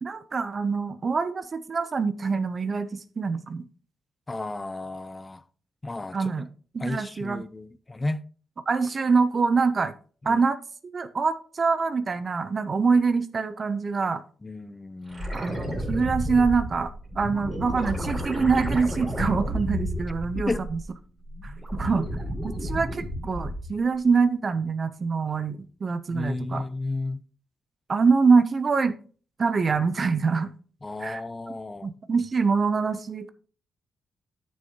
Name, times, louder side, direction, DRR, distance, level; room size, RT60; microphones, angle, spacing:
voice 1, 0.0-3.6 6.1-6.5 6.7-7.4 8.7-9.9 10.2-10.6 10.8-14.2 15.3-20.8 21.4-21.5 21.8-22.0 22.4-26.6 27.9-29.0 29.4-30.5 31.0-31.2 31.8-33.3, right 4 dB, 40° right, 0.6 m, -25 dB
voice 2, 4.3-5.4 5.8-6.3 6.8-8.2 10.2-10.4 14.4-15.3 20.3-20.6 26.1-27.2 30.8-31.9, left 2 dB, 20° left, 0.5 m, -33 dB
sound 1, 15.1-20.9 21.3-23.8 26.2-26.3, equal, 20° right, 3.4 m, -31 dB
11.0 x 6.4 x 2.9 m
cardioid pair, 100°, 0 cm